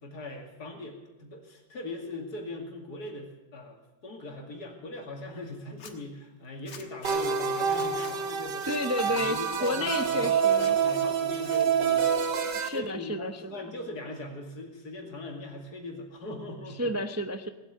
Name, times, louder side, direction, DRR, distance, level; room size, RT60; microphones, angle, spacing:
voice 1, 0.0-8.7 9.0-12.1 12.7-16.9, left 2 dB, 65° left, 2 dB, 2.9 m, -40 dB
Zipper (clothing), 5.7-5.9 6.7-7.2 7.6-8.1 8.6-9.1 9.5-10.1 10.5-11.0 11.4-12.2 12.5-13.1, left 6 dB, 85° left, 2.0 m, -48 dB
sound 1, 7.0-12.7, right 7 dB, 85° right, 1.9 m, -27 dB
voice 2, 8.7-10.8 12.5-13.6 16.8-17.5, left 1 dB, 25° right, 7 dB, 0.3 m, -31 dB
18.5 x 8.3 x 9.4 m, 1.0 s
omnidirectional pair, 1.8 m